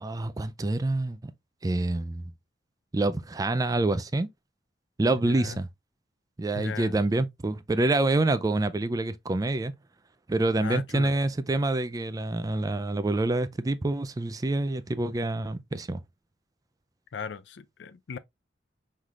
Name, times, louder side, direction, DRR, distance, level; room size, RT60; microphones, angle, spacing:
voice 1, 0.0-1.3 1.6-2.3 2.9-4.3 5.0-5.7 6.4-9.7 10.3-16.0, right 2 dB, 20° right, 0.4 m, -27 dB
voice 2, 5.1-5.6 6.5-7.0 10.6-11.1 17.1-18.2, left 5 dB, 90° left, 0.5 m, -37 dB
5.7 x 3.3 x 2.4 m
head